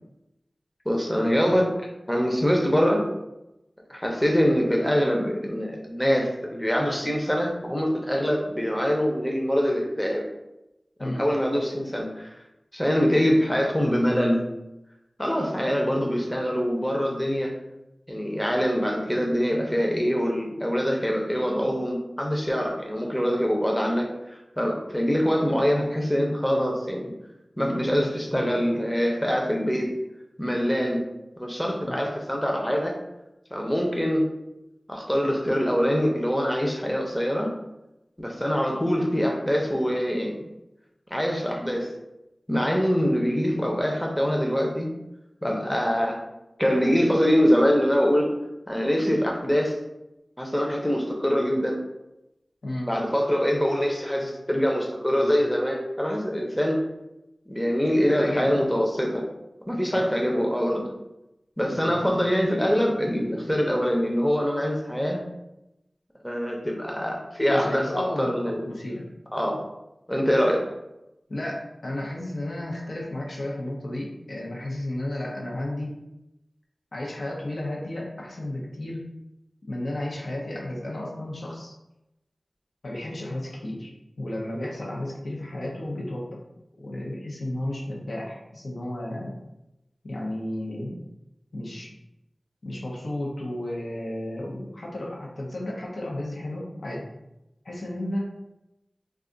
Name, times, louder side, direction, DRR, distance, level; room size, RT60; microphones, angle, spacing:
voice 1, 0.9-3.0 3.9-10.3 11.0-12.3 12.7-14.4 15.2-17.5 18.1-27.1 27.6-29.9 30.4-31.0 31.4-32.9 33.5-34.3 34.9-37.5 38.2-40.4 41.1-41.9 42.5-44.9 45.4-46.2 46.6-48.3 48.7-49.8 50.4-51.8 52.9-56.8 57.5-59.2 59.7-60.8 61.6-65.2 66.2-68.7 69.3-69.6 70.1-70.6, equal, 10° left, 0 dB, 0.6 m, -24 dB
voice 2, 58.0-58.5 59.9-60.2 61.7-61.9 67.5-69.1 71.3-76.0 76.9-79.1 79.7-81.7 82.8-86.4 86.8-89.3 90.0-91.0 91.5-91.9 92.6-97.1 97.6-98.3, left 1 dB, 85° left, -3 dB, 0.7 m, -33 dB
2.4 x 2.4 x 3.8 m, 0.91 s
wide cardioid pair, 65°, 0 cm